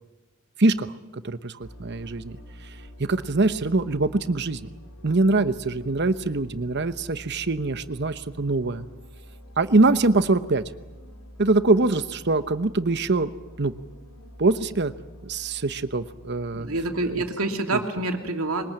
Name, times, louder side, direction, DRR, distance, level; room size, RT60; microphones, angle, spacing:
voice 1, 0.6-2.4 3.0-4.7 5.0-8.9 9.6-10.6 11.4-13.3 13.6-13.7 14.4-14.9 15.2-16.7 17.0-17.2 17.7-17.8, right 2 dB, 50° right, 11 dB, 1.0 m, -23 dB
sound 1, 1.6-17.3, equal, 90° left, 3.5 m, -46 dB
voice 2, 16.5-18.7, right 2 dB, 80° right, 4 dB, 2.7 m, -27 dB
22.5 x 21.0 x 8.9 m, 1.1 s
head